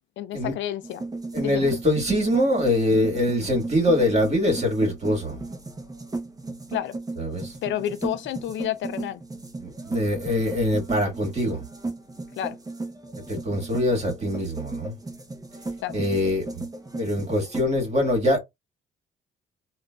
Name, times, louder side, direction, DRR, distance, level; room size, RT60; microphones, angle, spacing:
voice 1, 0.2-1.0 1.4-1.7 6.7-7.0 7.6-9.2 12.4-12.6 15.8-16.0, left 11 dB, 70° left, 0.4 m, -30 dB
sound 1, 0.8-17.7, right 2 dB, 20° right, 0.8 m, -35 dB
voice 2, 1.3-5.4 7.2-7.6 9.6-11.7 13.3-14.9 15.9-16.6 17.0-18.4, left 1 dB, 35° right, 1.8 m, -23 dB
3.6 x 2.4 x 2.3 m
cardioid pair, 90°, 20 cm